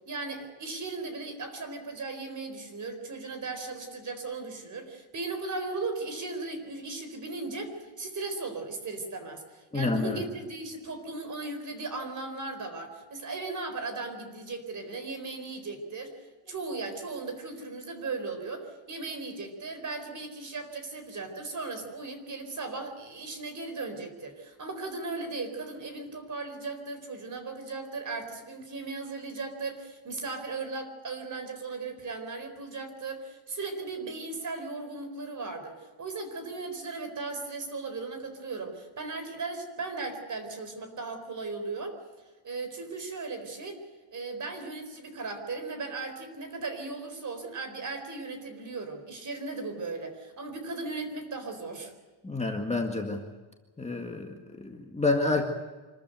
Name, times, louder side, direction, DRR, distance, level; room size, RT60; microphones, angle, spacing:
voice 1, 0.0-16.1 16.5-42.0 42.4-43.8 44.1-51.9, right 3 dB, 35° right, 8 dB, 4.3 m, -37 dB
voice 2, 9.7-10.2 52.2-53.2 53.8-55.5, left 3 dB, 15° left, 2 dB, 1.8 m, -29 dB
26.0 x 14.0 x 9.3 m, 1.3 s
cardioid pair, 155°, 49 cm